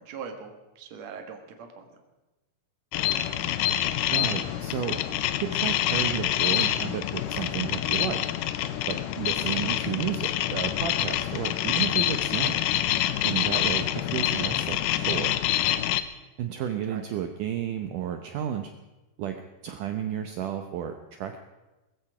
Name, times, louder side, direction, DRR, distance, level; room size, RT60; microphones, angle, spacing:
voice 1, 0.0-1.9 13.4-13.7 16.9-17.0, right 6 dB, 50° right, 4 dB, 2.5 m, -41 dB
sound 1, 2.9-16.0, left 12 dB, 85° left, 1.9 m, -26 dB
voice 2, 4.1-5.0 5.4-8.2 8.8-12.6 13.2-15.4 16.4-18.7 19.2-19.4 19.6-21.4, right 9 dB, 75° right, 6 dB, 2.0 m, -32 dB
20.0 x 14.5 x 4.9 m, 1.1 s
omnidirectional pair, 4.7 m